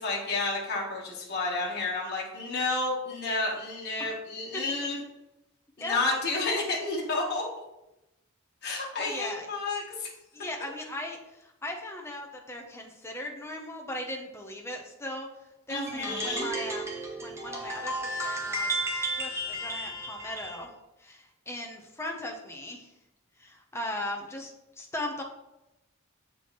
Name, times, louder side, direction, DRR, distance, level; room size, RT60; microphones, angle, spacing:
voice 1, 0.0-5.0 5.8-7.4 8.6-10.1 15.7-16.5, left 3 dB, 55° left, -3 dB, 1.3 m, -30 dB
voice 2, 9.0-9.5 10.3-15.3 15.7-16.9 17.2-20.7 21.0-22.9 23.4-25.2, left 1 dB, 15° left, 2 dB, 0.8 m, -38 dB
sound 1, 15.9-20.6, right 1 dB, 15° right, 0.9 m, -33 dB
7.6 x 4.4 x 3.1 m, 0.92 s
head